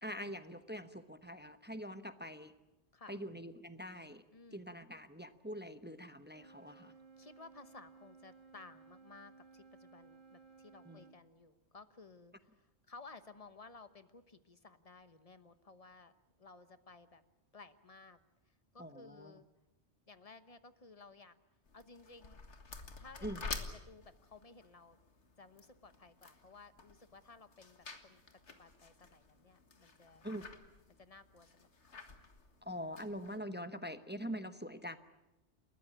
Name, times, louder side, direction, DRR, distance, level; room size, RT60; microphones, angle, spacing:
voice 1, 0.0-2.5 3.1-4.2 4.5-6.9 10.8-11.1 18.8-19.3 23.2-23.4 30.2-30.4 32.6-35.0, equal, 10° right, 10 dB, 0.9 m, -44 dB
Wind instrument woodwind instrument, 6.2-11.2, right 5 dB, 45° right, 1.6 m, -59 dB
voice 2, 6.7-16.1 16.4-17.2 17.5-18.2 18.5-19.5 20.1-21.3 21.7-22.4 23.0-25.0 25.4-30.2 31.0-32.0, left 3 dB, 35° left, 11 dB, 1.2 m, -57 dB
sound 1, 21.7-33.4, left 4 dB, 85° left, 2.1 m, -50 dB
29.5 x 14.0 x 10.0 m, 1.0 s
omnidirectional pair, 1.2 m